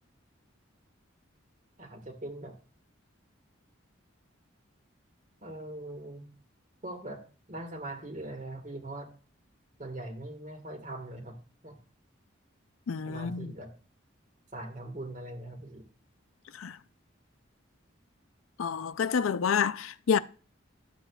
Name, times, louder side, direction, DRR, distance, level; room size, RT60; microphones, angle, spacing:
voice 1, 1.8-2.6 5.4-6.3 6.8-7.2 7.5-9.1 9.8-11.4 11.6-11.8 13.1-13.7 14.5-15.9, right 1 dB, 40° right, 1.6 m, -41 dB
voice 2, 12.9-13.5 16.6-16.8 18.6-20.2, left 6 dB, 85° left, 0.4 m, -28 dB
12.5 x 7.8 x 2.3 m
head